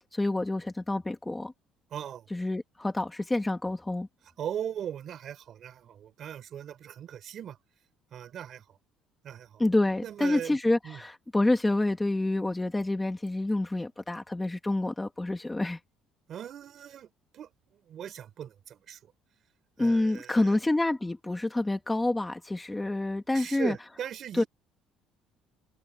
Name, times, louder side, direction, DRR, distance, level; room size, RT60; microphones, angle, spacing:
voice 1, 0.1-1.5 2.3-4.1 9.6-15.8 19.8-23.8 24.3-24.4, left 2 dB, 10° left, 1.3 m, -28 dB
voice 2, 1.9-2.3 4.4-7.6 8.1-8.8 9.2-9.6 10.0-10.6 10.8-11.0 16.3-17.1 17.3-17.5 17.9-19.1 19.8-20.6 23.3-24.5, right 9 dB, 40° right, 5.5 m, -39 dB
cardioid pair, 155°, 0 cm